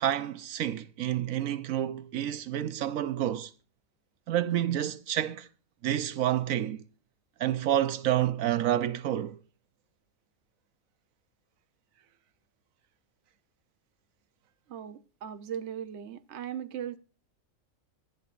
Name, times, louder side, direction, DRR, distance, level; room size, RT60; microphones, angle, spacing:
voice 1, 0.0-3.5 4.3-5.5 5.8-6.8 7.4-9.4, right 11 dB, 85° right, 1.2 m, -29 dB
voice 2, 14.7-17.0, right 9 dB, 60° right, 1.1 m, -38 dB
26.0 x 9.3 x 2.5 m
omnidirectional pair, 1.4 m